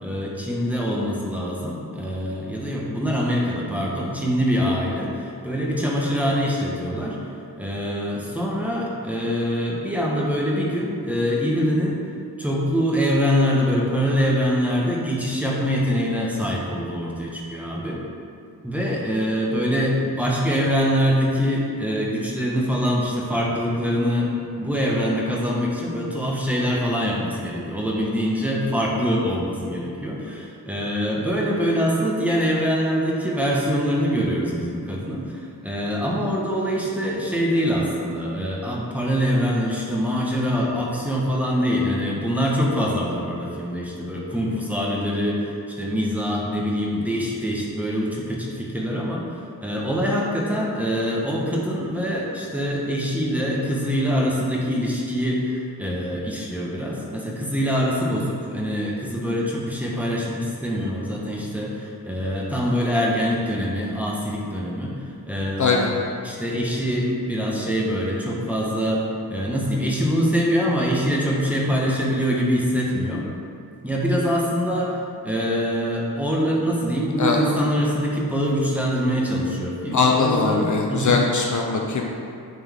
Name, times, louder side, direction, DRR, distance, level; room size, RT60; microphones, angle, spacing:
voice 1, 0.0-7.2 7.6-12.0 12.4-18.0 18.6-65.0 65.3-65.9 66.2-69.0 69.3-73.3 73.8-81.1, equal, 5° right, -4 dB, 1.2 m, -24 dB
voice 2, 79.9-82.1, left 4 dB, 50° left, 1 dB, 0.6 m, -21 dB
9.3 x 4.3 x 3.6 m, 2.5 s
wide cardioid pair, 105°, 38 cm